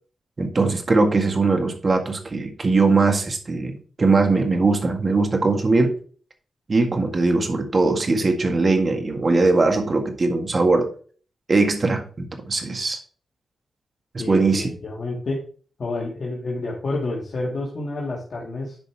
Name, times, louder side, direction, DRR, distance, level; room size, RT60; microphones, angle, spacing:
voice 1, 0.4-5.9 6.7-10.9 11.5-13.0 14.1-14.7, right 3 dB, 35° right, 4 dB, 1.8 m, -20 dB
voice 2, 14.2-15.4 15.8-18.8, left 2 dB, 50° left, -3 dB, 2.2 m, -29 dB
10.5 x 5.4 x 3.5 m, 0.42 s
wide cardioid pair, 115°, 0 cm